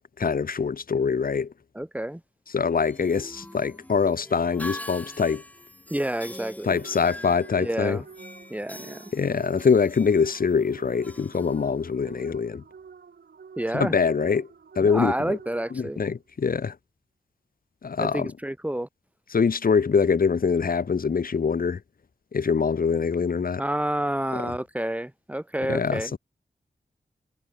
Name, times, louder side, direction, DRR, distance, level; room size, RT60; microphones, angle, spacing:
voice 1, 0.2-1.5 2.5-5.4 6.6-8.0 9.1-12.6 13.7-14.5 14.7-15.4 15.7-16.7 17.8-18.3 19.3-21.8 22.3-23.6 24.3-24.5 25.7-26.2, left 5 dB, 60° left, 1.6 m, -24 dB
voice 2, 1.7-2.2 5.9-6.8 7.5-8.0 8.5-9.0 13.6-13.9 14.8-16.0 18.0-18.9 23.6-26.2, right 1 dB, 10° right, 3.0 m, -29 dB
sound 1, 2.7-12.2, left 1 dB, 10° left, 6.0 m, -44 dB
sound 2, 6.7-16.1, right 6 dB, 85° right, 5.1 m, -49 dB
wide cardioid pair, 125°, 17 cm